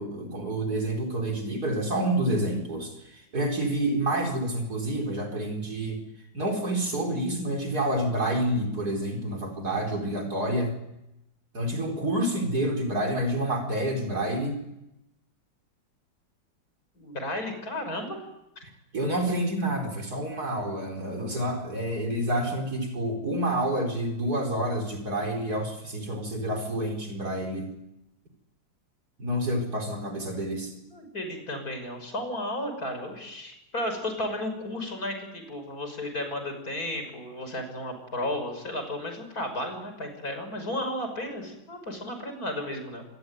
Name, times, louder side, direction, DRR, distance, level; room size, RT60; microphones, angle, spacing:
voice 1, 0.0-6.0 6.3-10.7 11.5-14.6 18.9-27.7 29.2-30.7, right 1 dB, 50° right, 3 dB, 5.0 m, -28 dB
voice 2, 17.0-18.2 30.9-43.0, left 1 dB, 50° left, 6 dB, 6.4 m, -33 dB
26.0 x 21.0 x 9.5 m, 0.88 s
omnidirectional pair, 2.1 m